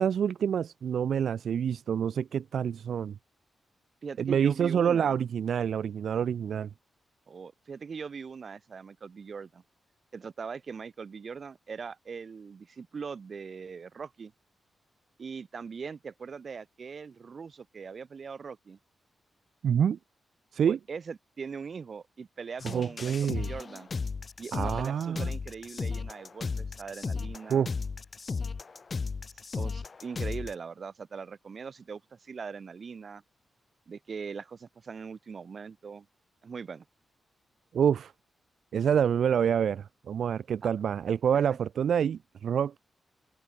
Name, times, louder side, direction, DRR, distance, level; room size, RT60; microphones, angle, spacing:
voice 1, 0.0-3.1 4.2-6.7 19.6-20.0 20.5-20.8 22.6-23.5 24.5-25.3 27.5-27.7 37.7-38.1 38.7-42.8, right 8 dB, 70° right, 0.9 m, -27 dB
voice 2, 4.0-5.2 7.3-9.6 10.1-14.3 15.2-18.8 20.7-23.9 24.4-27.6 29.5-33.2 33.9-36.1 36.4-36.8 41.5-41.6, right 5 dB, 45° right, 6.1 m, -41 dB
sound 1, 22.6-30.5, left 4 dB, 35° left, 0.4 m, -35 dB
wide cardioid pair, 155°, 0 cm